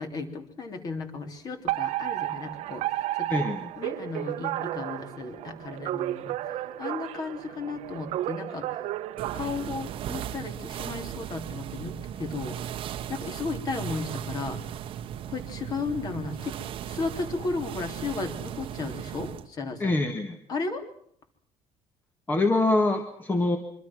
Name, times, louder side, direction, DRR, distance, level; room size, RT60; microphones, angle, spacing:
voice 1, 0.0-2.8 3.1-3.5 3.8-6.4 6.8-8.8 9.3-11.9 12.2-12.7 13.1-14.6 15.3-20.0 20.5-20.8, left 4 dB, 35° left, 6 dB, 3.3 m, -34 dB
Alarm, 1.7-10.2, right 15 dB, 70° right, 1.2 m, -33 dB
voice 2, 3.3-3.7 19.8-20.4 22.3-23.6, left 2 dB, 15° left, 6 dB, 1.8 m, -24 dB
sound 1, 9.2-19.5, right 10 dB, 50° right, 1.2 m, -37 dB
25.0 x 25.0 x 6.2 m, 0.65 s
cardioid pair, 175°, 12 cm